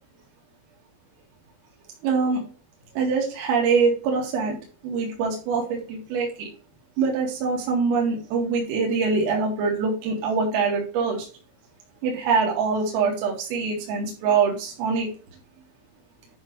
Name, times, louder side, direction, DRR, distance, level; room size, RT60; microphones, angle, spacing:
voice 1, 2.0-2.4 3.0-4.6 4.8-6.5 7.0-11.3 12.0-15.1, right 5 dB, 85° right, 4.7 m, -24 dB
12.0 x 5.7 x 3.1 m
omnidirectional pair, 5.8 m